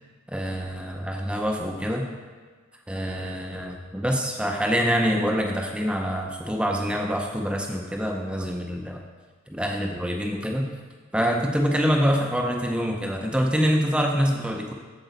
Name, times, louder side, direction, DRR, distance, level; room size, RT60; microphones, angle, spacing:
voice 1, 0.3-2.1 2.9-9.0 9.5-10.7 11.1-14.7, equal, 5° right, 1 dB, 0.6 m, -25 dB
8.2 x 7.3 x 4.0 m, 1.5 s
head